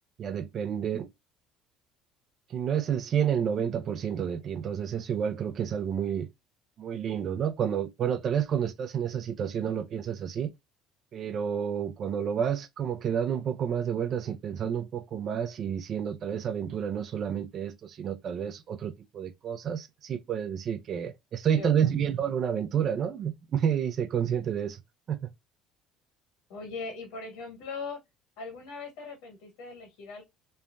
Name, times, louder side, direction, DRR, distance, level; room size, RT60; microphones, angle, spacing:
voice 1, 0.2-1.1 2.5-6.3 6.8-10.5 11.1-24.8 25.1-25.3, right 8 dB, 50° right, 0.4 m, -30 dB
voice 2, 21.5-21.9 26.5-28.0 28.4-30.2, left 4 dB, 85° left, 1.6 m, -40 dB
3.1 x 2.1 x 2.4 m
supercardioid pair, 95°, 0 cm